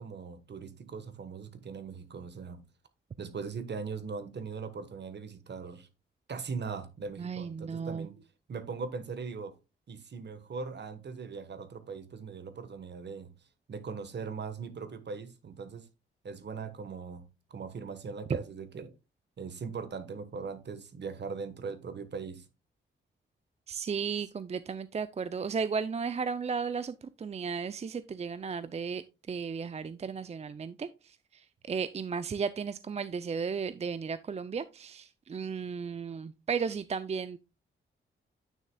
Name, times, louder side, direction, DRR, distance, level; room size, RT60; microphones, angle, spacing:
voice 1, 0.0-2.6 3.2-5.9 6.3-8.2 8.5-9.5 9.9-13.3 13.7-15.8 16.2-17.2 17.5-18.9 19.4-22.4, right 5 dB, 55° right, 1.2 m, -40 dB
voice 2, 7.2-8.1 23.7-37.4, right 5 dB, 30° right, 0.4 m, -35 dB
9.2 x 6.4 x 2.2 m
cardioid pair, 65°, 21 cm